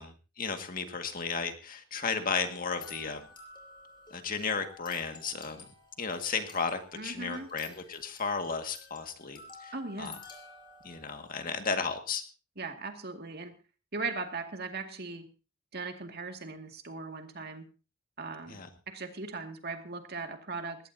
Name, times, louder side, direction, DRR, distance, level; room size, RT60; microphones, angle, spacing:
voice 1, 0.0-3.2 4.1-5.6 6.0-10.1 10.8-12.2 18.5-18.7, left 5 dB, 40° left, 6 dB, 2.0 m, -34 dB
sound 1, 2.6-11.5, left 4 dB, 20° left, 5.0 m, -52 dB
voice 2, 6.9-7.5 9.7-10.2 12.6-13.5 13.9-15.3 15.7-17.7 18.2-20.8, right 3 dB, 50° right, 5 dB, 2.2 m, -39 dB
20.0 x 17.0 x 2.8 m, 0.33 s
head